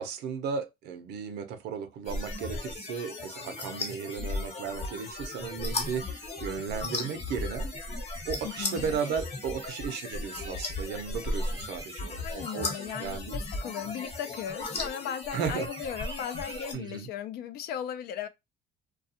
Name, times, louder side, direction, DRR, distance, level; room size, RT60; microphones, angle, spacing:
voice 1, 0.0-7.7 8.3-12.7 13.0-13.3 15.3-15.7 16.7-17.1, right 6 dB, 80° right, 0.6 m, -35 dB
sound 1, 2.0-16.7, left 2 dB, 35° left, 1.0 m, -36 dB
sound 2, 7.7-13.3 15.5-17.0, right 4 dB, 25° right, 0.5 m, -52 dB
voice 2, 8.4-8.9 12.2-18.3, left 9 dB, 70° left, 0.5 m, -37 dB
2.3 x 2.3 x 2.7 m
cardioid pair, 110°, 17 cm